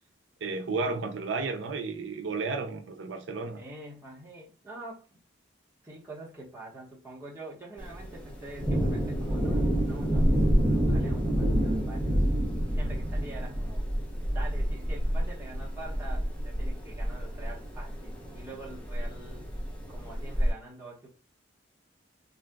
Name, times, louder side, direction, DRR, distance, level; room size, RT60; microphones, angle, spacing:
voice 1, 0.4-3.6, right 3 dB, 75° right, 0.5 m, -32 dB
voice 2, 3.5-5.2 5.8-12.1 12.6-13.9 14.3-19.5 19.9-21.1, right 2 dB, 10° right, 1.0 m, -45 dB
Thunder, 7.8-20.5, equal, 5° left, 0.7 m, -28 dB
3.8 x 2.3 x 2.2 m
head